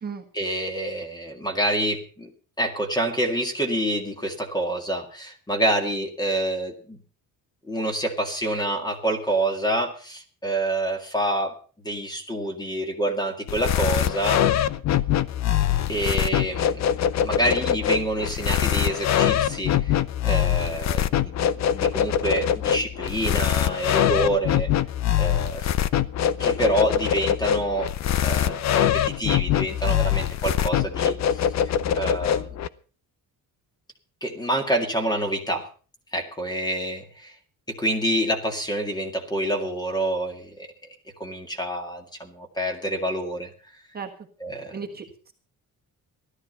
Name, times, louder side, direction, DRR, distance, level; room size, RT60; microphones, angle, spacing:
voice 1, 0.3-2.3 2.6-7.0 7.6-11.5 11.8-14.4 15.9-16.9 17.2-24.7 25.1-25.7 26.4-27.9 28.2-32.5 34.2-35.7 36.1-37.3 37.7-40.7 41.2-43.5 44.4-44.8, right 1 dB, 10° left, 5 dB, 2.1 m, -27 dB
sound 1, 13.5-32.7, left 10 dB, 50° left, 0.7 m, -23 dB
voice 2, 44.7-45.3, right 5 dB, 25° right, 2 dB, 1.5 m, -35 dB
16.5 x 12.5 x 5.4 m, 0.39 s
cardioid pair, 175°, 36 cm